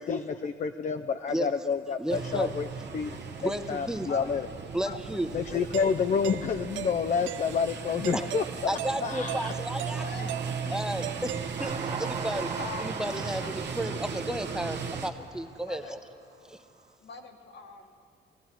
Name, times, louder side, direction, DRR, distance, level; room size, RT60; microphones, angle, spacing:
voice 1, 0.0-2.7 2.9-4.4 4.9-5.0 5.3-9.5, left 6 dB, 40° left, 8 dB, 0.5 m, -29 dB
voice 2, 2.0-2.5 3.4-4.1 4.7-5.4 8.1-8.3 8.7-10.0 10.7-16.0 16.5-16.6, right 1 dB, 5° right, 8 dB, 0.8 m, -33 dB
sound 1, 2.1-15.1, right 5 dB, 60° right, 1.0 m, -37 dB
Doorbell, 5.7-12.1, right 13 dB, 75° right, 0.4 m, -39 dB
voice 3, 9.8-10.8 12.6-13.0 13.4-13.8 15.6-16.0 17.0-18.0, left 3 dB, 60° left, 4 dB, 1.6 m, -43 dB
Train, 11.6-16.0, right 5 dB, 35° right, 1.3 m, -40 dB
19.5 x 15.0 x 4.5 m, 2.5 s
cardioid pair, 90°, 20 cm